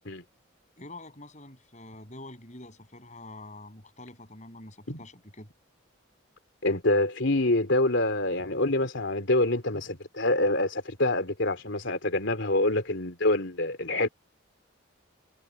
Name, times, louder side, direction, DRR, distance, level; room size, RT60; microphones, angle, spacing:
voice 1, 0.8-5.5, left 2 dB, 35° left, 6.7 m, -46 dB
voice 2, 6.6-14.1, left 2 dB, 65° left, 3.4 m, -26 dB
head